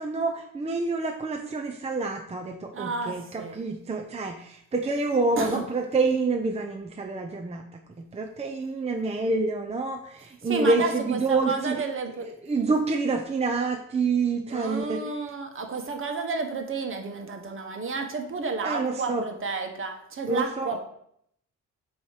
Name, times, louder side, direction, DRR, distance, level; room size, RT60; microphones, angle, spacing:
voice 1, 0.0-11.8 12.4-15.1 18.6-19.3 20.3-20.8, right 3 dB, 20° right, 2 dB, 0.6 m, -27 dB
voice 2, 2.7-3.6 5.4-5.6 10.4-12.3 14.5-20.8, right 4 dB, 45° right, 5 dB, 1.3 m, -31 dB
8.4 x 3.1 x 4.9 m, 0.71 s
cardioid pair, 90°, 30 cm